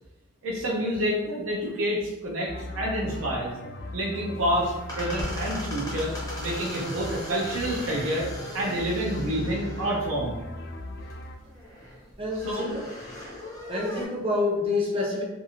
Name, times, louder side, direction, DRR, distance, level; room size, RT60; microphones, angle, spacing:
voice 1, 0.4-3.5 3.9-6.1 6.4-8.3 8.5-10.4 12.3-12.6 15.0-15.1, equal, 80° right, -4 dB, 0.5 m, -28 dB
sound 1, 2.5-11.4, left 2 dB, 55° left, 0.3 m, -38 dB
sound 2, 4.3-14.0, left 1 dB, 20° left, 0.7 m, -39 dB
voice 2, 12.2-12.8 13.7-15.2, left 2 dB, 25° right, -3 dB, 0.6 m, -27 dB
2.6 x 2.5 x 2.8 m, 1.1 s
head